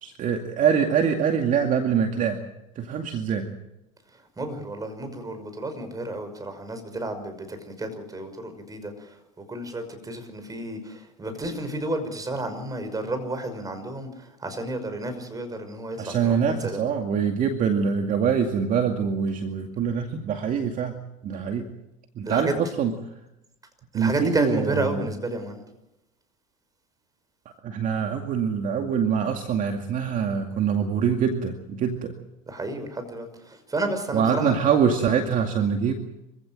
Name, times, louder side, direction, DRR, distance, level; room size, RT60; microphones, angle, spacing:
voice 1, 0.0-2.4 2.8-3.5 16.0-21.0 21.2-21.7 22.2-22.9 23.9-25.1 27.6-32.1 34.1-35.9, right 7 dB, 45° right, 4 dB, 2.3 m, -24 dB
voice 2, 4.4-8.9 9.5-14.1 14.4-16.8 22.3-22.5 23.9-25.6 32.5-34.5, right 2 dB, 20° right, 8 dB, 5.7 m, -31 dB
26.0 x 16.0 x 7.8 m, 0.91 s
hypercardioid pair, 90°, 18 cm